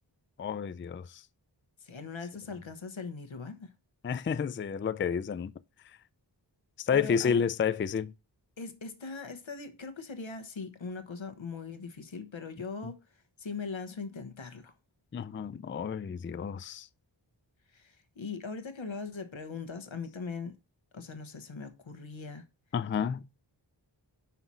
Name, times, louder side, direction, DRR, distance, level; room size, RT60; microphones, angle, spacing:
voice 1, 0.4-1.2 4.0-5.5 6.8-8.1 15.1-16.9 22.7-23.2, left 7 dB, 30° left, 0.3 m, -30 dB
voice 2, 1.8-3.7 6.9-7.4 8.6-13.0 13.4-14.7 17.7-20.5 20.9-22.5, left 4 dB, 85° left, 1.1 m, -40 dB
5.8 x 4.1 x 6.0 m
wide cardioid pair, 50°, 45 cm